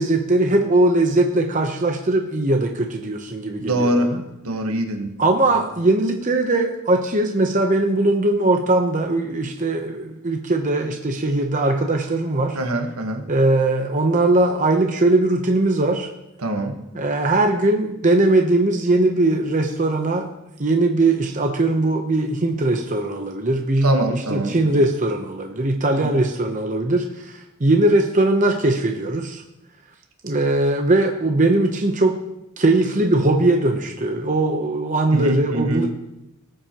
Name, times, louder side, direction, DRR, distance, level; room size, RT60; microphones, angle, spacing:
voice 1, 0.0-4.2 5.2-12.6 13.3-16.1 16.9-20.3 20.6-29.4 30.2-32.2 32.6-35.9, right 2 dB, 35° right, 3 dB, 0.8 m, -20 dB
voice 2, 3.6-4.1 4.4-5.1 5.5-5.6 12.5-13.2 16.4-16.7 23.8-24.6 26.0-26.1 35.1-35.9, right 1 dB, 75° right, 4 dB, 1.4 m, -23 dB
18.5 x 7.5 x 3.0 m, 0.88 s
head